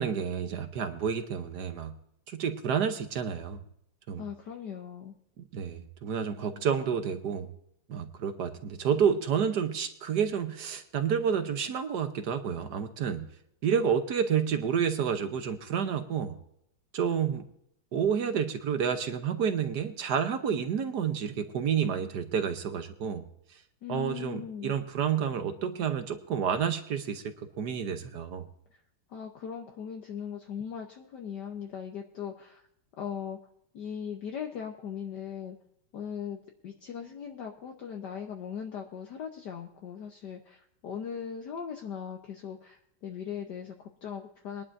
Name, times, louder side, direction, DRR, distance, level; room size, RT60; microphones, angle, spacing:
voice 1, 0.0-1.9 2.3-3.6 4.1-4.2 5.4-7.5 7.9-13.2 13.6-16.4 16.9-17.4 17.9-23.2 23.9-28.5, right 7 dB, 60° right, 8 dB, 1.3 m, -29 dB
voice 2, 4.2-5.2 23.8-24.7 29.1-32.6 33.0-33.4 33.7-35.6 35.9-44.6, left 8 dB, 60° left, 3 dB, 1.4 m, -39 dB
21.5 x 11.0 x 2.6 m, 0.74 s
omnidirectional pair, 2.3 m